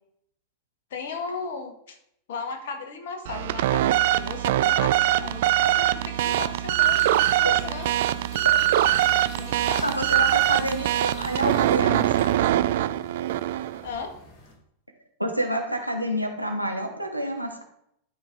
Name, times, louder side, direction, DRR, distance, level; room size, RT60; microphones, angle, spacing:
voice 1, 0.9-2.0 2.3-7.9 9.4-9.9 13.8-14.2, left 4 dB, 55° left, 5 dB, 1.6 m, -36 dB
sound 1, 3.2-13.8, right 13 dB, 55° right, 0.4 m, -23 dB
sound 2, 6.1-14.5, left 2 dB, 35° left, 2.9 m, -45 dB
voice 2, 9.8-12.6 15.2-17.6, equal, 90° right, 3 dB, 1.2 m, -28 dB
12.5 x 5.4 x 3.7 m, 0.73 s
figure-of-eight pair, 90°, 0 cm